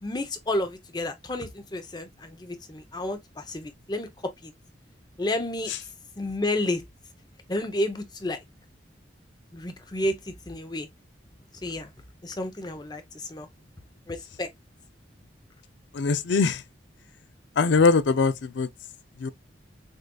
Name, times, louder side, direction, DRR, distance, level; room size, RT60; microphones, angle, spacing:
voice 1, 0.0-4.1 4.4-4.5 5.2-5.7 6.2-6.8 7.5-8.4 9.5-10.9 11.6-11.9 12.2-13.5 14.1-14.5, left 1 dB, 20° left, 0.7 m, -31 dB
voice 2, 15.9-16.6 17.6-18.7 19.2-19.3, left 4 dB, 75° left, 0.4 m, -21 dB
6.4 x 2.5 x 2.3 m
head